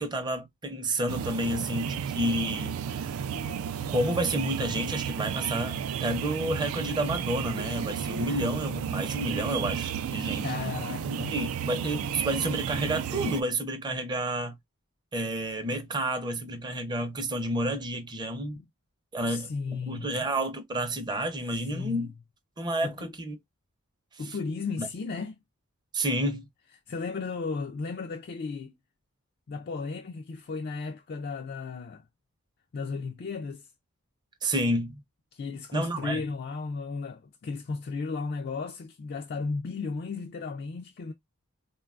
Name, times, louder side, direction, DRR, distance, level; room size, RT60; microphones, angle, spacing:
voice 1, 0.0-3.2 3.9-10.5 11.0-14.6 15.1-18.6 19.1-22.1 22.6-23.4 24.1-24.3 24.8-24.9 25.9-26.5 34.4-35.0 35.7-36.2, right 1 dB, 20° right, 0.6 m, -30 dB
sound 1, 1.1-13.4, right 8 dB, 70° right, 0.3 m, -33 dB
voice 2, 10.4-11.4 18.6-18.7 19.3-20.1 21.5-22.1 22.8-23.1 24.2-25.4 26.9-28.7 29.5-32.0 32.7-33.7 35.3-41.1, left 4 dB, 45° left, 0.3 m, -35 dB
3.7 x 2.2 x 2.3 m
head